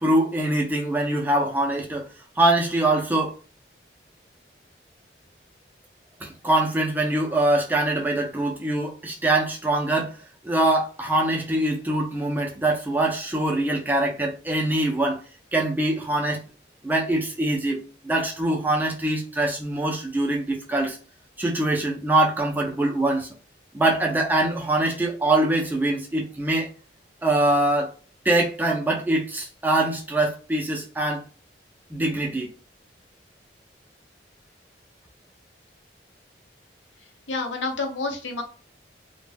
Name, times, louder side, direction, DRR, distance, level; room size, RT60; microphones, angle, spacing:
voice 1, 0.0-2.1 2.4-3.3 6.2-10.2 10.4-15.2 15.5-16.4 16.8-21.0 21.4-23.3 23.7-26.7 27.2-27.9 28.3-31.2 31.9-32.5, right 1 dB, 10° right, 0.4 m, -23 dB
voice 2, 37.3-38.4, left 3 dB, 85° left, 0.7 m, -28 dB
2.2 x 2.1 x 3.2 m
head